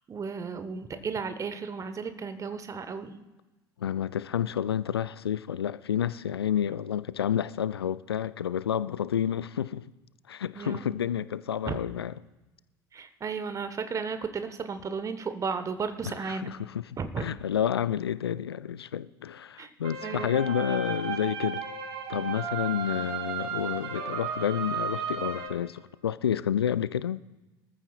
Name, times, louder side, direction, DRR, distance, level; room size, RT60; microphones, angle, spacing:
voice 1, 0.1-3.2 10.5-10.9 11.7-11.8 12.9-16.5 17.0-17.3 19.6-19.7 20.0-20.6, right 5 dB, 25° right, 1.1 m, -34 dB
voice 2, 3.8-9.9 10.3-12.1 16.0-21.6 22.1-27.2, left 9 dB, 75° left, 0.4 m, -30 dB
sound 1, 19.8-25.5, right 7 dB, 45° right, 2.0 m, -34 dB
23.5 x 14.5 x 2.4 m
figure-of-eight pair, 70°, 13 cm